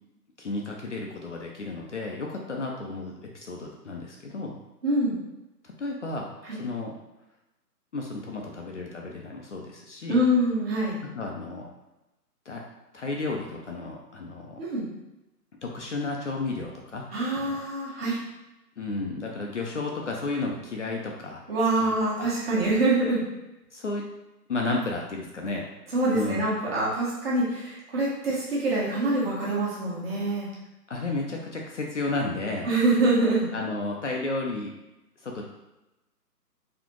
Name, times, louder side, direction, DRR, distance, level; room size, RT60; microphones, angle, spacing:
voice 1, 0.4-4.5 5.8-6.3 6.5-6.9 7.9-10.2 11.2-11.7 12.5-12.6 12.9-14.6 15.6-17.0 17.3-17.6 18.8-21.4 21.8-21.9 22.2-22.3 23.7-24.1 24.5-25.6 26.1-26.5 30.9-32.7 33.5-34.7 35.2-35.4, left 3 dB, 50° left, 0 dB, 0.5 m, -32 dB
voice 2, 4.8-5.2 6.4-6.6 10.1-11.0 14.6-14.9 17.1-18.2 21.5-23.2 25.9-30.5 32.6-33.5, right 2 dB, 35° right, -6 dB, 1.4 m, -25 dB
4.1 x 2.8 x 3.0 m, 0.98 s
hypercardioid pair, 160°, 49 cm